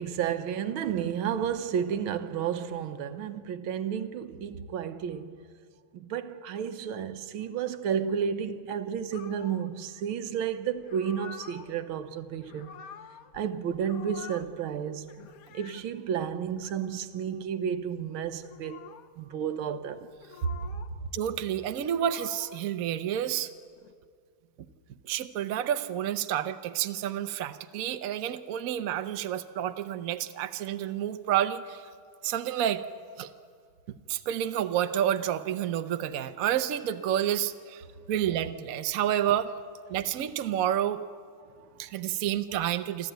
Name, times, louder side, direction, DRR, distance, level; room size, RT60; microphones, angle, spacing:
voice 1, 0.0-5.4 5.9-12.8 13.3-15.1 15.5-18.8 19.2-20.1 20.9-21.0 41.6-41.7, right 8 dB, 80° right, 1.7 m, -32 dB
sound 1, 9.1-9.7 10.8-11.7 12.3-13.5 13.7-14.5 15.0-15.9 16.5-16.8 18.3-19.1 20.1-20.9 21.6-22.7 23.6-23.9, left 7 dB, 60° left, 1.0 m, -48 dB
voice 2, 21.1-23.5 24.6-24.7 25.1-31.9 32.2-32.8 33.2-33.3 34.1-39.5 39.9-41.0 41.8-43.1, right 10 dB, 60° right, 0.9 m, -29 dB
28.0 x 12.5 x 9.1 m
omnidirectional pair, 2.2 m